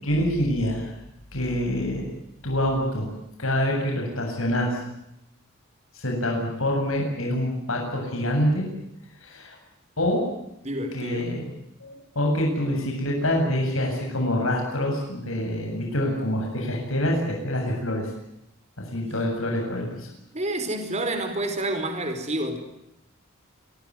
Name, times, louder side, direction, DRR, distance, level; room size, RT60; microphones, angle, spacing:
voice 1, 0.0-0.9 1.3-2.1 2.4-3.1 3.4-4.8 5.9-8.7 9.2-9.6 10.0-10.2 10.9-11.5 11.8-18.1 18.9-20.1, left 1 dB, 75° left, 1 dB, 7.9 m, -26 dB
voice 2, 10.6-11.4 19.0-19.1 20.3-22.6, right 1 dB, 35° right, 7 dB, 5.0 m, -29 dB
26.5 x 19.5 x 9.6 m, 0.83 s
head